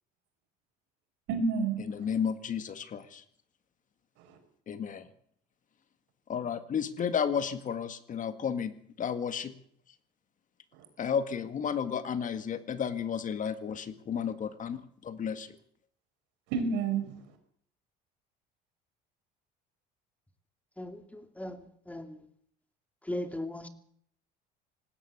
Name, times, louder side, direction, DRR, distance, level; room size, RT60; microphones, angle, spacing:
voice 1, 1.3-2.1 4.2-4.4 10.7-10.8 16.5-17.4, right 4 dB, 75° right, 5.9 m, -31 dB
voice 2, 2.0-3.2 4.7-5.1 6.3-9.5 11.0-15.6, left 7 dB, 40° left, 2.0 m, -32 dB
voice 3, 20.8-22.2 23.0-23.7, left 1 dB, 5° left, 2.6 m, -38 dB
19.5 x 16.5 x 8.1 m
supercardioid pair, 90°, 19 cm